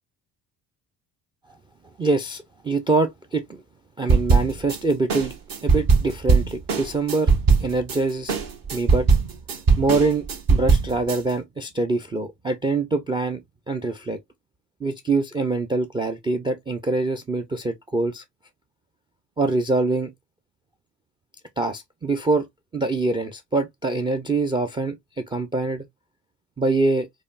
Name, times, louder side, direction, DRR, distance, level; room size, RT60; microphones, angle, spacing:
voice 1, 2.0-3.6 4.0-5.3 5.6-7.3 7.6-8.4 8.7-9.1 9.8-13.4 13.7-14.2 14.8-18.2 19.4-20.1 21.6-22.5 22.7-25.9 26.6-27.1, right 3 dB, 10° right, 0.3 m, -24 dB
sound 1, 4.1-4.8 5.1-8.0 8.3-11.2, right 4 dB, 45° right, 1.2 m, -19 dB
4.9 x 2.3 x 2.4 m
figure-of-eight pair, 50°, 48 cm